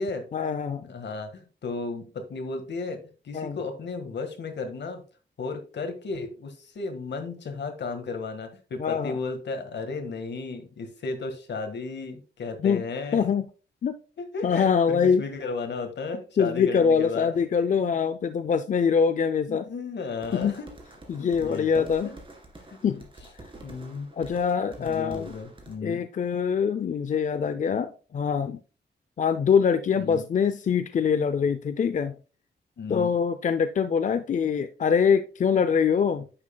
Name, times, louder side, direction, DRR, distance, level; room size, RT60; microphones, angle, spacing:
voice 1, 0.3-0.8 3.3-3.6 8.8-9.2 12.6-12.8 13.1-13.5 13.8-14.0 14.4-15.2 16.4-19.7 20.3-20.6 21.1-22.1 22.8-23.0 24.1-25.3 25.8-28.6 29.2-32.2 32.9-36.3, left 6 dB, 45° left, 11 dB, 0.4 m, -24 dB
voice 2, 0.8-5.0 5.4-13.2 14.2-17.3 19.5-20.7 21.1-21.9 22.7-23.0 23.6-24.1 24.8-26.0 30.0-30.3 32.8-33.1, left 4 dB, 75° left, 6 dB, 1.6 m, -34 dB
sound 1, 20.2-25.8, right 2 dB, 25° right, 2.0 m, -47 dB
9.6 x 7.4 x 2.2 m, 0.35 s
wide cardioid pair, 150°, 18 cm